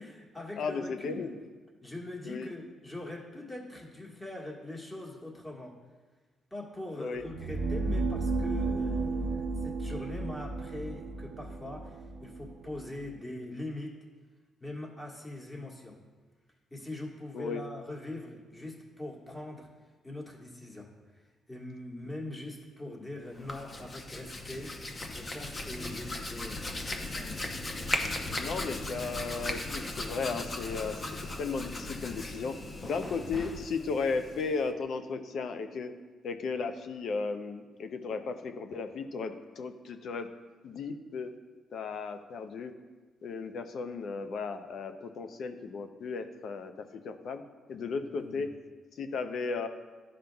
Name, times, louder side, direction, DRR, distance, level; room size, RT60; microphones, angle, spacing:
voice 1, 0.0-1.4 1.8-5.8 6.5-14.0 14.6-16.0 16.7-19.7 20.0-21.2 21.5-26.8 27.0-27.4 33.0-33.2 47.9-48.5, left 2 dB, 15° left, -2 dB, 1.6 m, -42 dB
voice 2, 0.6-1.4 2.3-2.5 7.0-7.2 17.3-17.6 28.4-35.9 36.2-40.3 40.6-41.3 41.7-42.7 43.2-47.4 47.7-48.5 49.0-49.7, left 4 dB, 65° left, 8 dB, 0.6 m, -35 dB
sound 1, 7.2-13.1, right 3 dB, 80° right, 0.6 m, -33 dB
Hands, 23.3-34.7, left 2 dB, 35° left, 0.8 m, -37 dB
12.0 x 5.0 x 2.3 m, 1.4 s
supercardioid pair, 70°, 0 cm